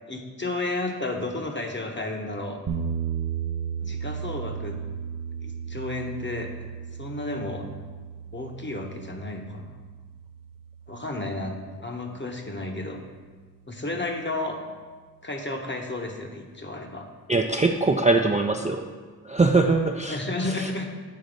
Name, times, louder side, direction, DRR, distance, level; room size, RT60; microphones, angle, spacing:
voice 1, 0.1-2.6 3.8-4.8 5.4-6.5 7.0-7.7 8.3-9.8 10.9-11.5 11.8-13.0 13.7-14.6 15.2-17.1 20.1-20.9, left 2 dB, 30° left, 2 dB, 0.9 m, -32 dB
sound 1, 2.7-12.7, right 7 dB, 60° right, 0.6 m, -35 dB
voice 2, 17.3-18.9 19.3-20.2 20.6-20.7, right 3 dB, 20° right, 3 dB, 0.3 m, -22 dB
7.7 x 4.0 x 5.2 m, 1.5 s
wide cardioid pair, 60°, 38 cm